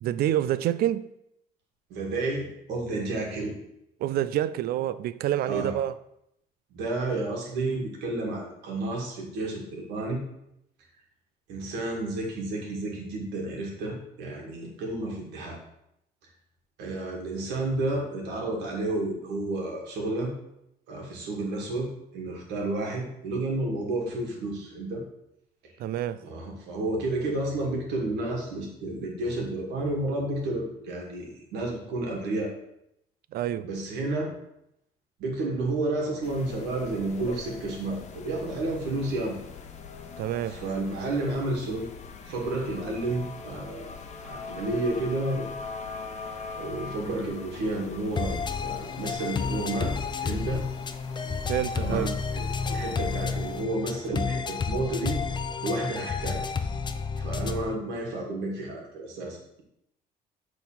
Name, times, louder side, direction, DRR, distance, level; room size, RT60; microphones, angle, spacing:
voice 1, 0.0-1.1 4.0-5.9 25.8-26.2 33.3-33.7 40.2-40.5 51.5-52.1, right 12 dB, 65° right, 0.4 m, -27 dB
voice 2, 1.9-3.6 5.5-5.7 6.7-10.2 11.5-15.6 16.8-20.3 20.9-25.0 25.6-25.7 26.2-32.5 33.6-34.3 35.2-39.4 40.5-41.9 42.3-45.5 46.6-50.6 51.8-55.2 55.6-56.4 57.1-59.6, right 2 dB, 90° right, 2.2 m, -31 dB
sound 1, 36.2-53.6, left 5 dB, 40° left, 1.0 m, -42 dB
sound 2, 48.2-57.8, left 5 dB, 25° left, 0.6 m, -31 dB
6.8 x 4.1 x 5.7 m
cardioid pair, 110°, 17 cm